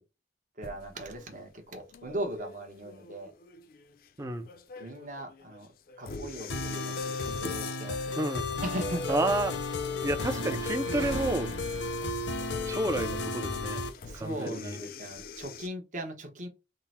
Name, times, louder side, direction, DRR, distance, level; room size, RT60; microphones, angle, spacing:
sound 1, 0.6-15.7, left 4 dB, 55° left, 0.4 m, -45 dB
voice 1, 0.6-3.3 4.8-5.7 6.0-8.2 8.6-9.3 9.9-10.1 14.1-16.5, right 1 dB, 45° right, 0.9 m, -39 dB
voice 2, 4.2-4.5 8.1-8.5 9.1-9.5 10.0-11.5 12.6-13.8 14.1-14.8, right 2 dB, 15° right, 0.4 m, -30 dB
sound 2, 6.5-13.9, left 3 dB, 85° left, 0.7 m, -33 dB
sound 3, 10.3-14.2, right 2 dB, 85° right, 0.7 m, -44 dB
3.7 x 2.0 x 4.2 m
head